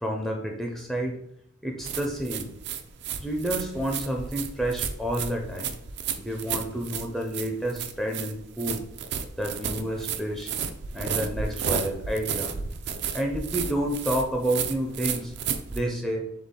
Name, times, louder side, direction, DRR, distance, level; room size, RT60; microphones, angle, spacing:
voice 1, 0.0-1.2 1.6-2.5 3.2-5.7 6.2-8.8 9.4-10.5 10.9-12.5 13.1-15.3 15.7-16.2, right 1 dB, ahead, 0 dB, 0.4 m, -29 dB
sound 1, 1.8-15.8, right 7 dB, 55° right, 0.4 m, -33 dB
4.1 x 3.6 x 3.6 m, 0.73 s
head